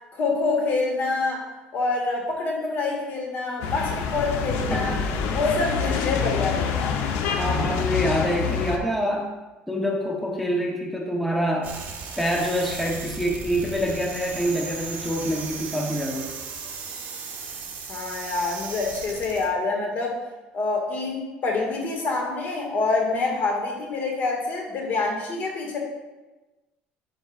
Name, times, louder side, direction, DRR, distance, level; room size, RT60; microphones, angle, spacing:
voice 1, 0.1-1.4 1.7-5.0 5.3-7.0 17.9-20.2 20.5-25.8, left 3 dB, 55° left, 0 dB, 1.7 m, -26 dB
sound 1, 3.6-8.8, left 6 dB, 75° left, 0.7 m, -26 dB
voice 2, 4.7-5.0 7.4-9.3 9.7-11.7 12.2-16.3, equal, 5° left, -1 dB, 0.8 m, -26 dB
sound 2, 11.6-19.5, right 5 dB, 50° right, 1.4 m, -36 dB
10.5 x 5.2 x 2.4 m, 1.1 s
cardioid pair, 110°, 4 cm